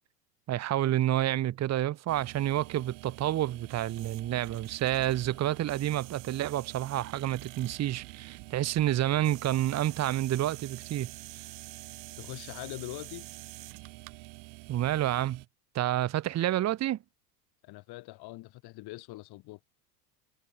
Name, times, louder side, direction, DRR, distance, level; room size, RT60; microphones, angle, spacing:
voice 1, 0.5-11.1 14.7-15.4 15.7-17.0, right 13 dB, 30° right, 1.4 m, -29 dB
sound 1, 2.1-15.5, right 29 dB, 55° right, 4.9 m, -46 dB
voice 2, 12.2-13.3 17.6-19.6, left 20 dB, 50° left, 3.8 m, -43 dB
hypercardioid pair, 110°, 49 cm